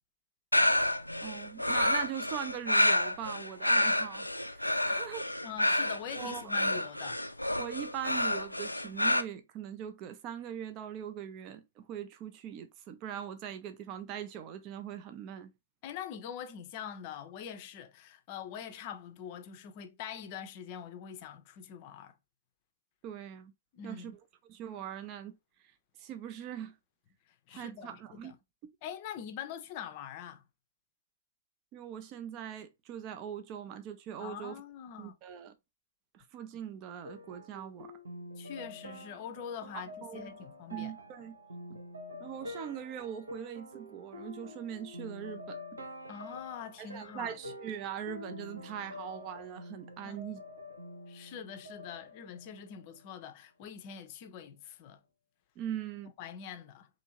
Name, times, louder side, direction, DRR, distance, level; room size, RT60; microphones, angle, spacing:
sound 1, 0.5-9.2, left 1 dB, 90° left, 0.3 m, -29 dB
voice 1, 1.2-4.3 4.5-5.3 6.1-6.5 7.6-15.5 23.0-23.5 23.8-24.2 24.5-25.3 26.0-26.8 27.5-28.4 31.7-34.6 35.0-35.5 36.1-37.9 39.7-40.3 40.7-41.4 42.2-45.6 46.8-50.4 55.6-56.1, right 9 dB, 30° right, 0.5 m, -41 dB
voice 2, 5.4-7.2 15.8-22.1 23.7-24.1 27.5-28.3 28.8-30.4 34.2-35.1 38.4-40.9 46.1-47.4 50.0-50.2 51.1-55.0 56.2-56.9, left 8 dB, 40° left, 0.5 m, -44 dB
sound 2, 37.0-53.1, left 1 dB, 75° right, 0.8 m, -47 dB
2.7 x 2.6 x 2.9 m
figure-of-eight pair, 110°, 0 cm